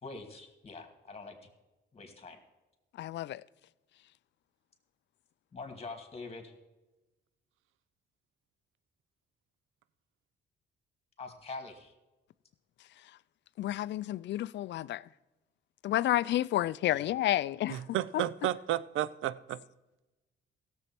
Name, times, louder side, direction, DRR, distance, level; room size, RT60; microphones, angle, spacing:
voice 1, 0.0-1.3 1.9-2.4 5.5-6.5 11.2-11.9 16.9-17.1, left 3 dB, 30° left, 2.3 m, -44 dB
voice 2, 2.9-3.4 13.0-13.1 13.6-15.1 15.8-17.9 18.1-18.2, left 14 dB, 65° left, 0.4 m, -30 dB
voice 3, 17.7-19.6, right 13 dB, 80° right, 0.5 m, -32 dB
16.5 x 7.2 x 4.4 m
cardioid pair, 90°, 20 cm